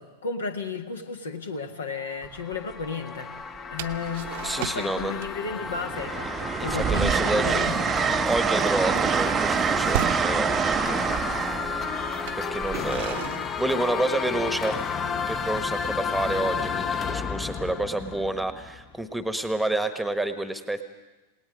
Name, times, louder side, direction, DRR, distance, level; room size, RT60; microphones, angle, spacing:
voice 1, 0.0-3.3 3.7-8.3, left 5 dB, 70° left, 6 dB, 1.7 m, -33 dB
sound 1, 2.0-18.9, left 6 dB, 25° left, 0.8 m, -32 dB
Train, 2.2-2.5 3.8-4.6 5.0-13.7 15.3-15.6, right 7 dB, 20° right, 0.7 m, -27 dB
sound 2, 3.8-4.9 5.2-5.5 5.8-6.1 6.5-6.7 7.0-7.3 7.7-10.3 11.2-11.3 12.1-14.4, right 12 dB, 55° right, 0.9 m, -36 dB
voice 2, 4.4-5.2 6.6-7.7 8.3-10.5 12.4-14.8 15.3-20.8, right 2 dB, ahead, 10 dB, 1.2 m, -29 dB
28.0 x 18.5 x 5.1 m, 1.1 s
figure-of-eight pair, 90°, 0 cm